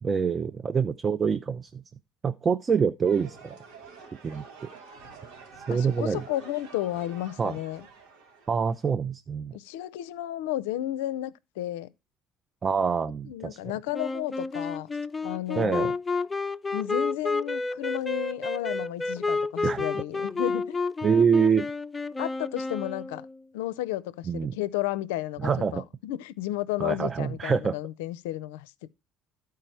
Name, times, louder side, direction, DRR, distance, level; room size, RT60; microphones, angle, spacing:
voice 1, 0.0-1.8 2.2-3.6 4.2-4.4 5.7-6.2 7.4-7.6 8.5-9.6 12.6-13.6 15.6-15.9 19.6-19.8 21.0-21.7 24.3-24.5 25.4-25.8 26.8-27.8, right 6 dB, 35° right, 0.5 m, -25 dB
sound 1, 3.0-8.9, right 5 dB, 80° right, 1.8 m, -48 dB
voice 2, 5.7-7.9 9.5-11.9 13.3-14.9 15.2-15.9 16.7-20.8 22.2-23.3 23.5-28.9, left 14 dB, 80° left, 0.4 m, -33 dB
Wind instrument woodwind instrument, 13.9-23.4, left 3 dB, 20° left, 0.5 m, -30 dB
12.0 x 4.7 x 4.4 m
hypercardioid pair, 65°, 0 cm